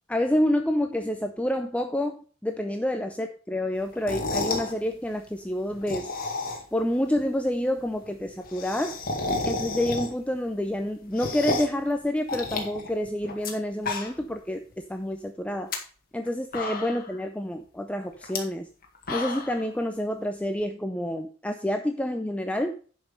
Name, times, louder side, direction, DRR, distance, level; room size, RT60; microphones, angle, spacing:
voice 1, 0.1-6.1 6.7-9.0 9.4-14.6 14.9-15.7 16.1-18.7 19.1-22.8, left 1 dB, 5° left, 5 dB, 0.5 m, -28 dB
sound 1, 3.9-4.7 5.7-6.8 7.1-7.2 7.5-7.6 7.8-7.9 8.1-10.3 10.7-11.8 12.3-13.5 13.8-14.4 14.7-14.8 15.5-15.8 16.2-16.3 16.5-17.1 18.2-18.4 18.8-19.6, left 3 dB, 45° left, 1.9 m, -31 dB
10.5 x 5.3 x 5.2 m, 0.40 s
head